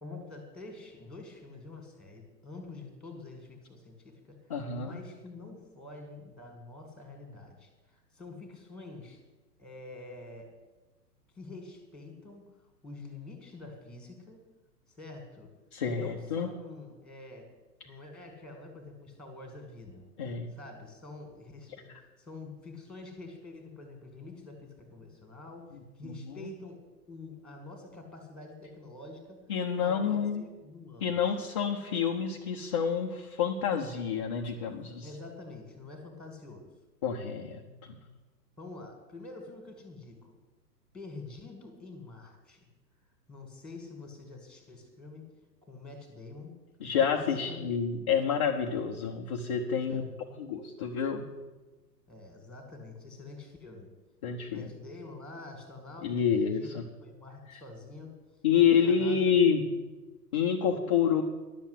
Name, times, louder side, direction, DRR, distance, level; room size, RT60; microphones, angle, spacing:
voice 1, 0.0-9.2 9.6-10.5 11.3-12.5 12.8-14.5 14.9-15.5 15.9-17.5 17.8-20.1 20.5-21.9 22.2-29.4 29.8-31.4 35.0-36.7 38.6-40.3 40.9-42.7 43.3-45.3 45.6-46.5 47.1-47.7 49.8-50.4 52.1-53.9 54.5-58.4 58.7-59.3, left 3 dB, ahead, 4 dB, 1.9 m, -47 dB
voice 2, 4.5-5.0 15.7-16.5 20.2-20.5 21.9-22.0 25.7-25.8 26.3-26.4 29.5-30.4 31.0-35.1 37.0-38.0 46.8-50.0 50.4-51.2 54.2-54.7 56.0-56.8 57.5-57.6 58.4-59.6 60.3-61.2, left 7 dB, 20° left, 0 dB, 0.5 m, -28 dB
11.0 x 7.1 x 9.6 m, 1.2 s
figure-of-eight pair, 115°, 49 cm